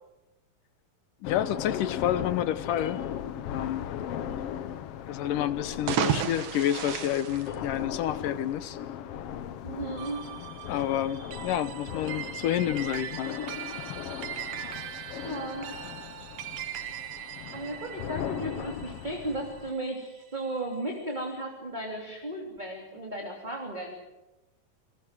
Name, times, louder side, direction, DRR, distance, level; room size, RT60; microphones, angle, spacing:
sound 1, 1.2-19.7, left 10 dB, 90° left, 1.3 m, -38 dB
voice 1, 1.2-3.0 3.5-3.9 5.1-8.8 10.7-13.4, left 11 dB, 70° left, 13 dB, 2.5 m, -29 dB
sound 2, 5.7-8.3, right 8 dB, 70° right, 3.2 m, -31 dB
voice 2, 9.6-10.2 15.2-15.7 17.5-23.9, right 1 dB, 15° right, 1 dB, 2.9 m, -35 dB
sound 3, 10.0-20.6, right 11 dB, 90° right, 3.4 m, -41 dB
30.0 x 20.5 x 7.7 m, 1.0 s
omnidirectional pair, 4.2 m